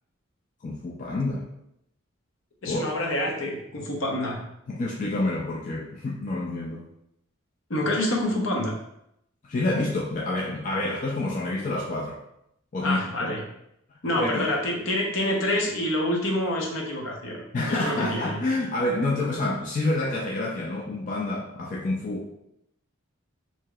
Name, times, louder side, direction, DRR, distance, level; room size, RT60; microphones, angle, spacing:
voice 1, 0.6-1.4 2.6-2.9 4.7-6.8 9.4-12.2 12.7-13.3 14.2-14.5 17.5-22.3, left 2 dB, 40° left, -3 dB, 0.4 m, -28 dB
voice 2, 2.6-4.4 7.7-8.8 12.8-13.4 14.0-18.4, left 1 dB, 70° left, 0 dB, 0.8 m, -27 dB
4.7 x 2.8 x 2.3 m, 0.77 s
head